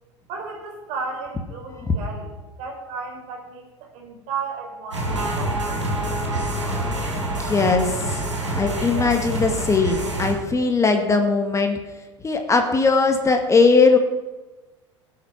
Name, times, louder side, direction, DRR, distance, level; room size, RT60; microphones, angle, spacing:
voice 1, 0.3-5.8, right 4 dB, 50° right, 2 dB, 4.1 m, -34 dB
sound 1, 4.9-10.3, right 1 dB, 85° right, 4.3 m, -26 dB
voice 2, 7.4-8.2 8.5-11.8 12.2-14.0, left 4 dB, 20° left, 5 dB, 1.8 m, -19 dB
18.0 x 7.9 x 5.8 m, 1.2 s
figure-of-eight pair, 75°, 15 cm